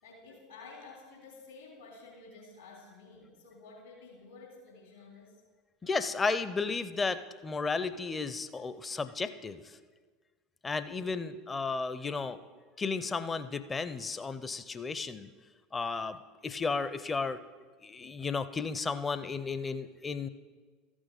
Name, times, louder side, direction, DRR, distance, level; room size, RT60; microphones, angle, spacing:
voice 1, 0.0-5.4 10.9-11.1, left 3 dB, 70° left, -2 dB, 3.4 m, -51 dB
voice 2, 5.8-9.6 10.6-12.4 12.8-15.3 15.7-17.4 17.8-20.3, left 4 dB, 20° left, 12 dB, 0.5 m, -33 dB
14.0 x 6.2 x 5.3 m, 1.4 s
figure-of-eight pair, 75°, 0 cm